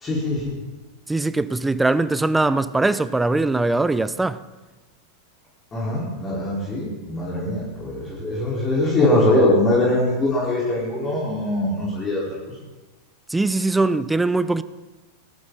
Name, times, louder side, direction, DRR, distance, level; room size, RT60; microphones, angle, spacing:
voice 1, 0.0-0.6 5.7-12.2, left 1 dB, 20° left, 4.6 m, -22 dB
voice 2, 1.1-4.4 13.3-14.6, right 2 dB, 10° right, 0.6 m, -21 dB
19.0 x 15.0 x 4.2 m
figure-of-eight pair, 90°, 0 cm